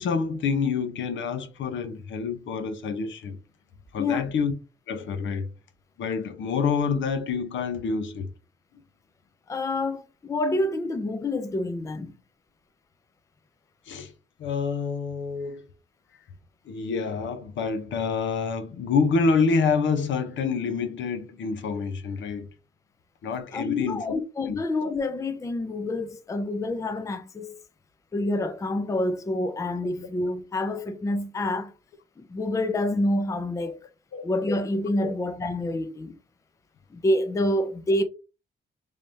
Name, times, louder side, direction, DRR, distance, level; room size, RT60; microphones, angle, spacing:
voice 1, 0.0-3.4 3.9-4.5 4.9-5.5 6.0-8.3 13.9-14.1 14.4-15.6 16.7-22.5 23.2-24.2 24.5-24.6 34.1-34.3 35.0-35.1, left 5 dB, 75° left, 0.7 m, -27 dB
voice 2, 4.0-4.3 9.5-12.1 23.5-27.5 28.1-31.7 32.2-33.8 34.2-36.1 36.9-38.0, left 1 dB, 15° left, 0.4 m, -27 dB
3.3 x 3.2 x 2.6 m
cardioid pair, 140°, 20 cm